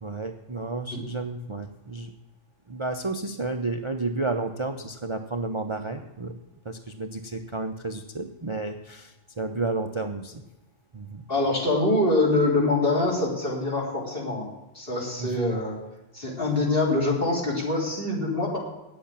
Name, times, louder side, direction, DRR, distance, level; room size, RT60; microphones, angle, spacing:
voice 1, 0.0-2.1 2.7-6.3 6.6-10.4 10.9-11.2 15.2-15.6, right 3 dB, 30° right, 6 dB, 0.6 m, -31 dB
voice 2, 11.3-14.5 14.7-15.8 16.1-18.6, left 2 dB, 50° left, -1 dB, 3.8 m, -24 dB
9.4 x 8.1 x 8.6 m, 0.98 s
omnidirectional pair, 1.2 m